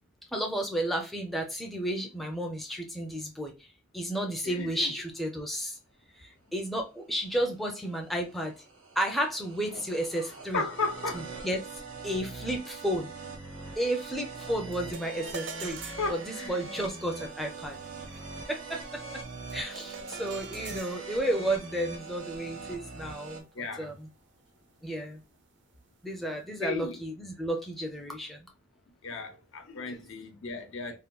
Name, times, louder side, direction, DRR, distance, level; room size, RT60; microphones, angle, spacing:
voice 1, 0.3-3.5 3.9-5.8 6.2-8.5 9.0-10.6 11.4-11.6 12.0-13.1 13.8-17.8 18.1-18.2 18.5-19.2 19.5-24.1 24.8-25.2 26.0-28.5, right 1 dB, ahead, 0.4 m, -32 dB
voice 2, 4.2-4.9 9.7-9.8 10.2-10.3 10.5-11.3 16.0-16.7 23.5-23.9 26.6-27.0 29.0-31.0, left 3 dB, 70° left, 0.7 m, -35 dB
sound 1, 7.3-23.4, right 3 dB, 85° right, 0.9 m, -43 dB
sound 2, 14.7-24.2, right 5 dB, 55° right, 0.4 m, -46 dB
3.5 x 2.2 x 2.2 m
head